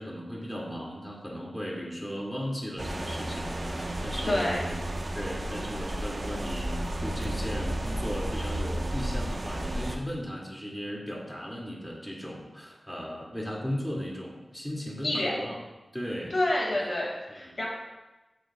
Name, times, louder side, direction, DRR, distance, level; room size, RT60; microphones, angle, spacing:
voice 1, 0.0-4.8 5.1-15.6 15.9-16.4 17.3-17.6, equal, 10° left, -4 dB, 2.6 m, -36 dB
sound 1, 2.8-10.0, right 1 dB, 50° right, 1.3 m, -32 dB
voice 2, 4.2-4.6 15.0-15.3 16.3-17.7, left 1 dB, 60° left, -3 dB, 2.5 m, -28 dB
12.5 x 9.2 x 2.5 m, 1.1 s
wide cardioid pair, 60°, 0 cm